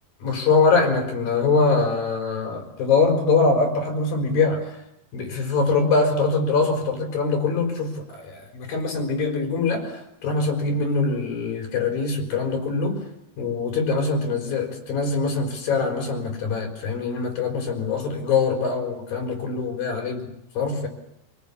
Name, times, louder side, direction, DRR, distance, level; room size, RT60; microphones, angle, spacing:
voice 1, 0.2-4.8 5.1-13.0 13.4-20.3 20.5-20.9, left 4 dB, 65° left, 3 dB, 6.1 m, -23 dB
28.0 x 18.0 x 8.5 m, 0.86 s
omnidirectional pair, 4.4 m